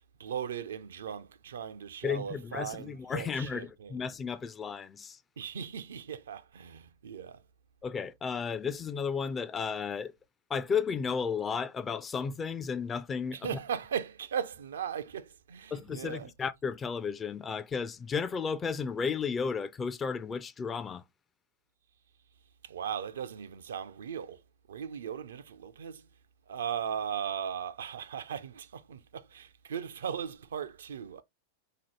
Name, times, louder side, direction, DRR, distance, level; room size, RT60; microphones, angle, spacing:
voice 1, 0.2-3.9 5.4-7.4 13.3-16.3 22.6-24.4 24.7-26.0 26.5-31.2, right 8 dB, 65° right, 0.4 m, -38 dB
voice 2, 2.0-5.2 7.8-10.1 10.5-13.5 15.7-21.0, left 6 dB, 20° left, 0.4 m, -33 dB
3.8 x 2.9 x 3.0 m
figure-of-eight pair, 90°, 0 cm